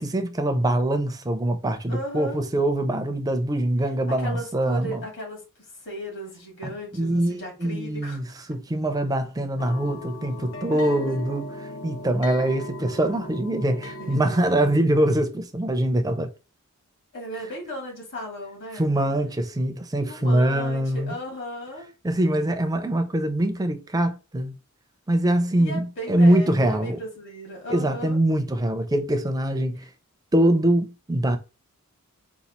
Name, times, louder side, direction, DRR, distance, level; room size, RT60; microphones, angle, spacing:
voice 1, 0.0-5.0 6.9-11.5 11.8-16.3 18.7-21.2 22.0-24.5 25.1-27.0 27.7-29.9 30.3-31.4, right 1 dB, 15° right, 0.5 m, -23 dB
voice 2, 1.9-2.4 4.1-8.2 10.7-11.3 14.0-14.5 17.1-18.8 20.1-21.9 25.5-28.2, equal, 55° left, 2.1 m, -36 dB
sound 1, 9.6-14.8, left 1 dB, 85° left, 0.7 m, -38 dB
4.0 x 2.4 x 4.2 m
head